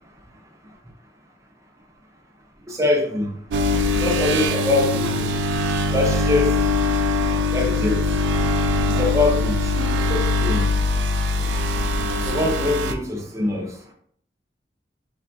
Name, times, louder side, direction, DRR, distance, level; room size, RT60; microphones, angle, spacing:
voice 1, 2.7-3.3 4.0-5.3 5.9-6.5 7.5-8.0 9.0-10.7 11.4-11.5 12.2-13.7, left 2 dB, 15° right, 1 dB, 0.5 m, -23 dB
sound 1, 3.5-12.9, left 2 dB, 85° right, 0.3 m, -22 dB
3.6 x 2.2 x 2.5 m, 0.63 s
head